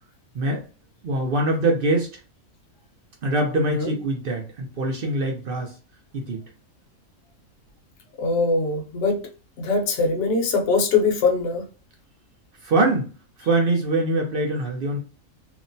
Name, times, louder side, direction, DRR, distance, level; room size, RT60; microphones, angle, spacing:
voice 1, 1.0-2.1 3.2-5.7 6.1-6.4 12.6-13.1 13.4-15.0, right 2 dB, 60° right, 2 dB, 0.6 m, -23 dB
voice 2, 8.2-9.2 9.6-11.6, left 4 dB, 65° left, 1 dB, 1.0 m, -22 dB
2.9 x 2.1 x 2.5 m, 0.35 s
omnidirectional pair, 1.5 m